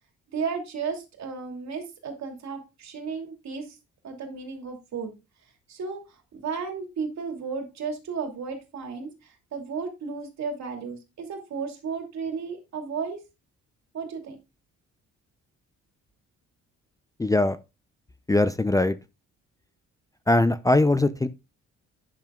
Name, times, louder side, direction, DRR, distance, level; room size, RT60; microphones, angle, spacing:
voice 1, 0.3-3.7 4.0-5.1 5.7-6.0 6.3-13.2 13.9-14.4, right 5 dB, 65° right, 2.7 m, -34 dB
voice 2, 17.2-17.6 18.3-18.9 20.3-21.3, left 2 dB, 10° left, 0.5 m, -21 dB
10.5 x 6.9 x 2.4 m
cardioid pair, 90°, 30 cm